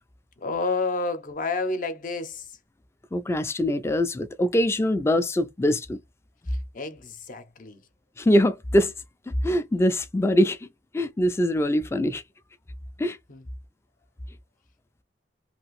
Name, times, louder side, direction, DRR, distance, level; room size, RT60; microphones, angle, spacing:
voice 1, 0.4-2.4 6.7-7.8 13.3-13.4, left 3 dB, 50° left, 0.6 m, -29 dB
voice 2, 3.1-6.0 8.2-8.9 9.3-10.7 10.9-12.2 13.0-13.2, equal, 15° left, 0.3 m, -23 dB
2.8 x 2.5 x 3.0 m
head